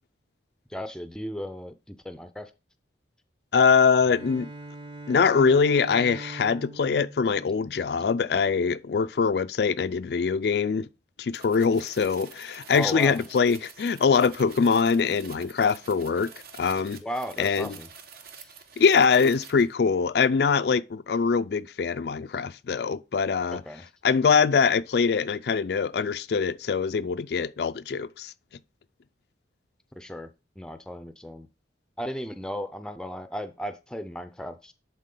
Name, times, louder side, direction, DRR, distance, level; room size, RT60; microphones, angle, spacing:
voice 1, 0.7-2.5 12.7-13.2 17.0-17.9 18.4-18.5 23.5-23.9 30.0-31.5 32.0-34.7, equal, 5° left, 0.5 m, -36 dB
voice 2, 3.5-4.5 5.1-10.9 11.2-17.0 17.4-17.7 18.8-23.6 24.0-28.3, left 5 dB, 60° left, 0.4 m, -23 dB
Bowed string instrument, 4.0-8.1, right 2 dB, 25° right, 0.9 m, -42 dB
sound 1, 11.3-19.7, right 6 dB, 55° right, 1.0 m, -47 dB
10.5 x 4.1 x 3.8 m
head